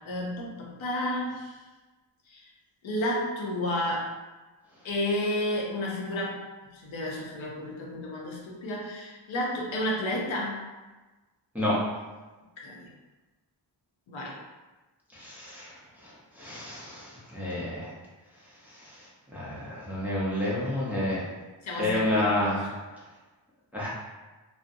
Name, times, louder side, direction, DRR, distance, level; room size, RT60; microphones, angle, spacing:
voice 1, 0.0-1.5 2.3-2.4 2.8-4.1 4.8-6.4 6.7-10.6 12.6-12.9 14.1-14.4 21.6-22.3 22.6-22.7, left 1 dB, 85° left, -2 dB, 0.6 m, -31 dB
voice 2, 15.1-15.7 16.0-16.1 16.4-17.9 18.7-19.1 19.3-21.2 21.8-22.6 23.7-23.9, left 1 dB, 5° right, -8 dB, 0.5 m, -29 dB
2.5 x 2.0 x 2.5 m, 1.2 s
wide cardioid pair, 155°, 46 cm